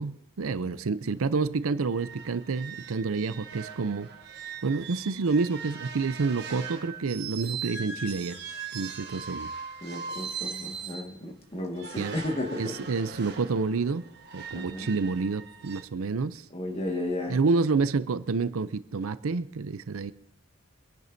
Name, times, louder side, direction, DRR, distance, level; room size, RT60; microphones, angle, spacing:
voice 1, 0.0-4.1 4.6-8.4 8.7-9.5 12.0-12.2 12.6-14.0 14.3-16.4 17.3-20.1, right 4 dB, 70° right, 0.5 m, -28 dB
sound 1, 1.1-1.2 1.5-1.6 1.9-11.1 11.7-15.8, right 6 dB, 50° right, 1.3 m, -40 dB
voice 2, 9.8-12.9 14.5-14.9 16.5-17.4, left 1 dB, 25° left, 1.8 m, -34 dB
25.5 x 10.5 x 2.7 m
head